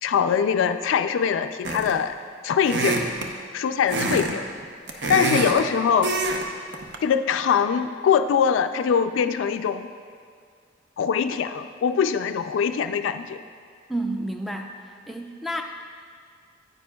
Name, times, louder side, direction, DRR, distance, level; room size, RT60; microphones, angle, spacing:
voice 1, 0.0-2.2 2.4-3.0 3.5-4.4 5.1-6.1 7.0-9.9 11.0-13.4, left 7 dB, 90° left, 10 dB, 0.3 m, -22 dB
sound 1, 1.6-2.1 2.6-3.3 3.9-4.3 4.6-5.6 6.0-6.4 6.7-7.0, right 2 dB, 60° right, 0.7 m, -25 dB
voice 2, 13.9-15.6, right 1 dB, ahead, 2 dB, 0.4 m, -30 dB
9.4 x 9.3 x 2.2 m, 2.2 s
head